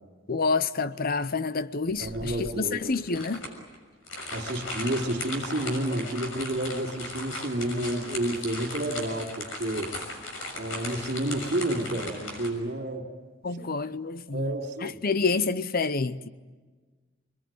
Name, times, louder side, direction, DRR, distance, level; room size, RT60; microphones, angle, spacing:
voice 1, 0.3-3.4 13.4-14.5 14.8-16.3, left 4 dB, 45° left, 0.7 m, -28 dB
sound 1, 1.9-12.5, left 2 dB, 80° left, 6.4 m, -37 dB
voice 2, 2.0-2.9 4.3-10.0 10.6-13.1 13.5-13.6 14.3-15.0, right 1 dB, 55° right, 3.8 m, -30 dB
27.0 x 21.5 x 9.4 m
head